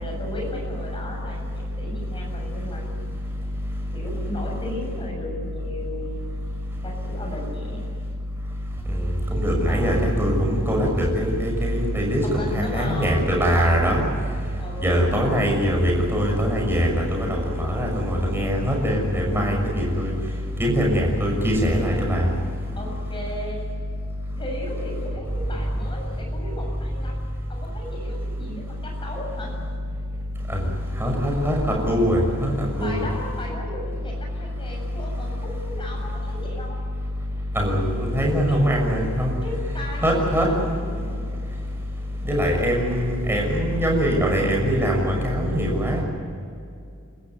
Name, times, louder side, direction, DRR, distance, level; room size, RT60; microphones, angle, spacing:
voice 1, 0.0-3.0 3.9-6.2 6.8-7.8 9.7-10.2 12.2-13.2 14.6-15.1 22.8-23.6 24.3-27.2 27.5-29.5 32.8-36.8 38.5-38.6 39.4-40.6, left 1 dB, 20° left, 0 dB, 7.5 m, -35 dB
voice 2, 8.9-14.0 14.8-20.1 20.6-22.3 30.5-30.6 30.9-33.0 37.5-39.3 40.0-40.5 42.2-46.0, equal, 10° right, -1 dB, 6.4 m, -22 dB
29.0 x 14.5 x 9.6 m, 2.5 s
head